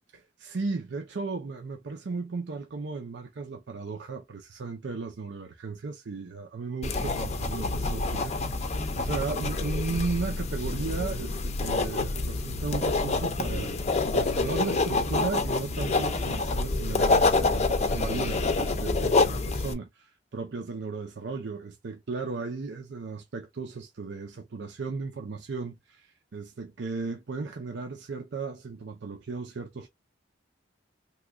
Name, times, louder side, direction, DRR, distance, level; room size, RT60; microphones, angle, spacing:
voice 1, 0.1-13.8 14.1-29.9, right 4 dB, 65° right, 0.5 m, -35 dB
sound 1, 6.8-19.7, left 3 dB, 35° left, 0.6 m, -27 dB
3.0 x 2.3 x 3.5 m
head